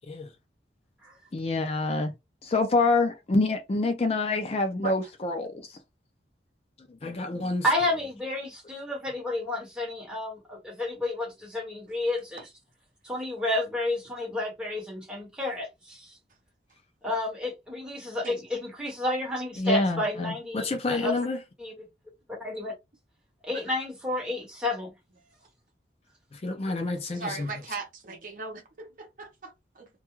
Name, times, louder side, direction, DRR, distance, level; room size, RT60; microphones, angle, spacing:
voice 1, 1.3-2.1 2.4-5.5 7.0-7.6 19.6-21.4 26.4-27.5, left 2 dB, 35° left, 0.4 m, -27 dB
voice 2, 7.6-12.4 13.0-16.2 17.0-21.1 21.6-21.7 22.4-22.7 23.4-24.9, left 2 dB, 5° right, 1.1 m, -31 dB
voice 3, 27.1-29.9, right 3 dB, 50° right, 0.8 m, -38 dB
2.3 x 2.2 x 2.9 m
head